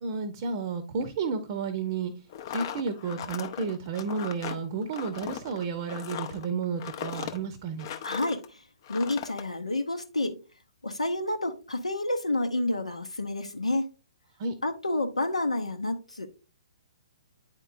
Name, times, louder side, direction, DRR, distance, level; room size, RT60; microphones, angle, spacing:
voice 1, 0.0-2.1 2.5-7.9 14.4-14.5, right 5 dB, 40° right, 10 dB, 0.7 m, -32 dB
sound 1, 2.3-8.5 8.8-9.4, left 9 dB, 40° left, 0.6 m, -38 dB
voice 2, 8.0-8.6 8.9-10.4 10.8-13.9 14.6-16.3, left 2 dB, 85° left, 5 dB, 0.7 m, -29 dB
8.9 x 4.5 x 2.5 m, 0.32 s
figure-of-eight pair, 120°, 3 cm